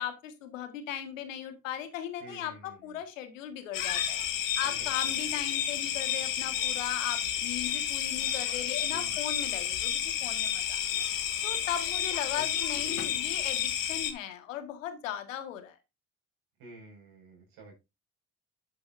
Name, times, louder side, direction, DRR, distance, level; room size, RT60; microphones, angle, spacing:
voice 1, 0.0-4.2 4.6-10.8 11.4-15.8, left 10 dB, 85° left, 9 dB, 1.7 m, -37 dB
voice 2, 2.2-3.0 4.6-5.6 8.9-9.2 12.3-12.4 12.7-13.4 16.6-17.7, right 1 dB, 70° right, 0 dB, 5.8 m, -49 dB
sound 1, 3.7-14.1, left 10 dB, 60° left, 1.9 m, -31 dB
12.0 x 8.4 x 2.6 m, 0.24 s
hypercardioid pair, 50°, 38 cm